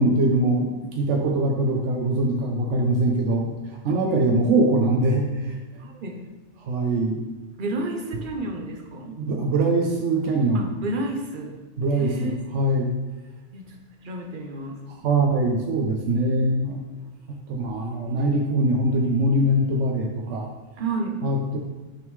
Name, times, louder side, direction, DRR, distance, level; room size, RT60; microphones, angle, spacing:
voice 1, 0.0-5.6 6.6-7.2 9.2-10.7 11.8-12.9 14.9-16.8 17.3-20.5 21.2-21.6, right 1 dB, 80° right, 0 dB, 1.0 m, -22 dB
voice 2, 5.8-6.2 7.6-9.2 10.5-11.6 11.9-12.4 13.5-13.8 14.0-14.8 20.8-21.2, right 2 dB, 50° right, 2 dB, 0.9 m, -31 dB
8.8 x 3.5 x 3.1 m, 1.2 s
omnidirectional pair, 1.2 m